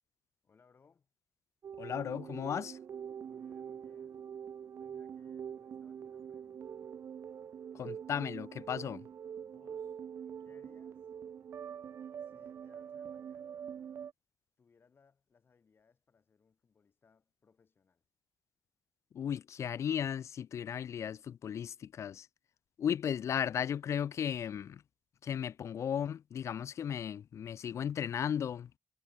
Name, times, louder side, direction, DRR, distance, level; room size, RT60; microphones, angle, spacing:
voice 1, 0.4-1.1 3.3-4.3 4.7-6.8 9.4-10.0 10.4-11.1 12.2-13.7 14.6-18.0, left 5 dB, 40° left, 4.9 m, -68 dB
sound 1, 1.6-14.1, right 8 dB, 50° right, 0.3 m, -44 dB
voice 2, 1.8-2.8 7.7-9.1 19.1-22.3 22.8-24.8 25.2-28.8, left 8 dB, 55° left, 0.4 m, -35 dB
wide cardioid pair, 135°, 6 cm